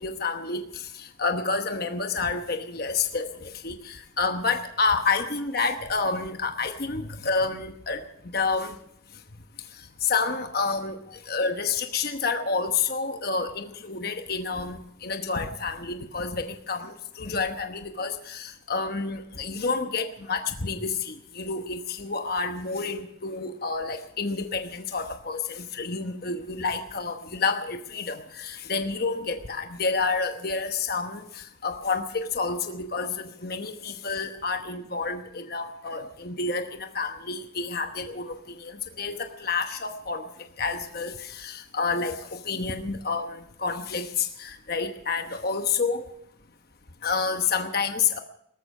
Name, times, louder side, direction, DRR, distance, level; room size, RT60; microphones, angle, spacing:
voice 1, 0.0-8.7 9.7-40.3 40.6-46.1 47.0-48.2, left 4 dB, 45° left, 6 dB, 1.0 m, -29 dB
18.5 x 13.5 x 5.5 m, 0.75 s
head